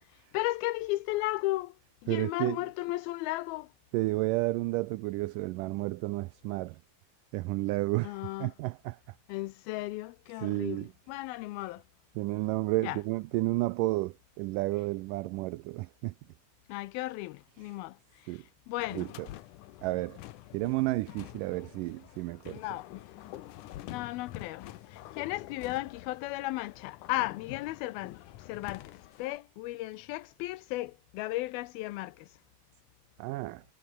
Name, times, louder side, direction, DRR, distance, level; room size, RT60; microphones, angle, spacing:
voice 1, 0.3-1.7 2.0-3.7 8.0-8.5 9.3-11.8 12.8-13.0 16.7-18.0 18.7-19.1 22.5-23.0 23.9-28.2 28.5-32.3, left 18 dB, 85° left, 2.6 m, -35 dB
voice 2, 2.1-2.7 3.9-6.8 7.3-9.0 10.4-10.9 11.6-11.7 12.2-16.1 17.6-17.8 18.3-18.4 18.9-19.3 19.8-20.2 20.5-22.8 33.2-33.6, right 20 dB, 85° right, 1.9 m, -32 dB
sound 1, 18.8-29.4, left 14 dB, 70° left, 2.2 m, -47 dB
omnidirectional pair, 4.3 m